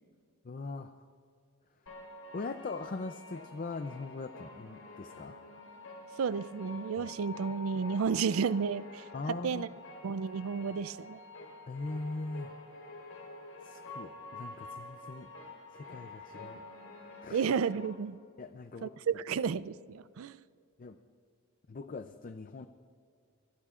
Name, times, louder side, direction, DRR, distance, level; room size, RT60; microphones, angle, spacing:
voice 1, 0.4-1.0 2.3-5.4 7.0-7.1 9.1-9.8 11.7-12.5 13.6-15.3 15.7-16.6 17.2-17.5 18.4-19.0 20.8-21.0 21.7-22.7, left 3 dB, 40° left, 0.5 m, -41 dB
sound 1, 1.9-17.9, left 2 dB, 85° left, 4.0 m, -48 dB
voice 2, 6.2-9.7 10.0-11.2 17.3-18.2 18.8-20.4, right 6 dB, 65° right, 0.4 m, -32 dB
26.0 x 20.0 x 2.5 m
head